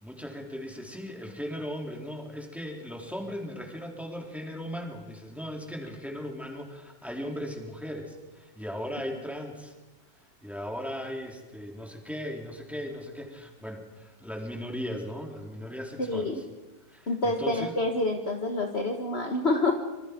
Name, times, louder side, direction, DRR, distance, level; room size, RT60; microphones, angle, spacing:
voice 1, 0.0-9.7 10.4-16.4 16.9-17.7, equal, ahead, 1 dB, 3.6 m, -37 dB
voice 2, 16.1-16.4 17.1-19.7, left 2 dB, 35° left, 3 dB, 1.7 m, -27 dB
26.5 x 26.0 x 5.2 m, 1.1 s
omnidirectional pair, 2.0 m